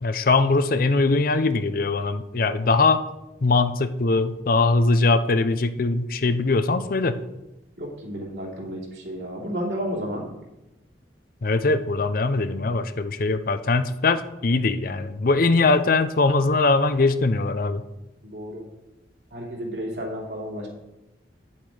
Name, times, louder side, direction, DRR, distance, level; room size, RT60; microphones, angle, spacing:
voice 1, 0.0-3.0 3.4-7.2 11.4-17.8, left 3 dB, 50° left, 11 dB, 0.5 m, -21 dB
voice 2, 7.8-10.3 18.2-18.6 19.3-20.7, equal, 65° right, -2 dB, 2.8 m, -32 dB
10.0 x 7.3 x 4.9 m, 0.96 s
head